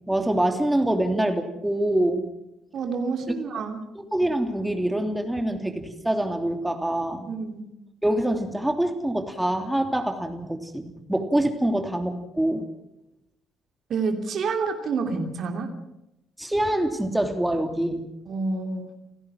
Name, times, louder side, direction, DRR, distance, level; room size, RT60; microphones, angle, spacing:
voice 1, 0.1-2.3 3.5-3.6 3.9-7.3 8.0-12.7 16.4-18.0, right 1 dB, 5° right, 5 dB, 3.1 m, -25 dB
voice 2, 2.7-3.8 7.3-7.6 13.9-15.7 18.3-18.9, right 4 dB, 50° right, 4 dB, 3.0 m, -28 dB
30.0 x 17.0 x 6.1 m, 0.87 s
figure-of-eight pair, 45°, 0 cm